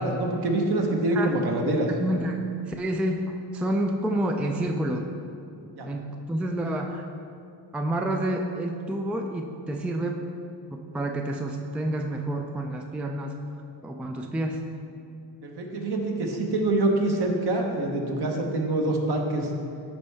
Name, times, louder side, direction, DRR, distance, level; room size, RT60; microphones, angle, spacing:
voice 1, 0.0-1.9 5.7-5.9 15.4-19.5, right 2 dB, 55° right, 1 dB, 1.3 m, -25 dB
voice 2, 2.0-5.1 5.8-7.1 7.7-10.3 10.7-13.4 13.8-14.6, right 1 dB, 5° right, 3 dB, 0.4 m, -29 dB
12.0 x 4.3 x 3.4 m, 2.6 s
cardioid pair, 85°, 46 cm